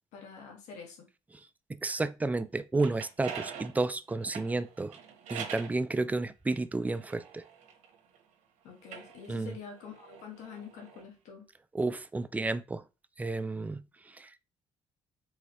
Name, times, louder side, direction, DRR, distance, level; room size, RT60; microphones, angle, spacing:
voice 1, 0.1-1.1 8.6-11.5, left 6 dB, 85° left, 1.6 m, -46 dB
voice 2, 1.7-5.0 5.3-7.4 9.3-9.6 11.7-12.8 13.2-13.8 14.1-14.3, right 3 dB, 15° right, 0.3 m, -31 dB
sound 1, 2.5-5.8 6.5-8.2 8.7-11.1, right 7 dB, 85° right, 1.0 m, -44 dB
4.8 x 3.2 x 3.0 m
cardioid pair, 115°, 12 cm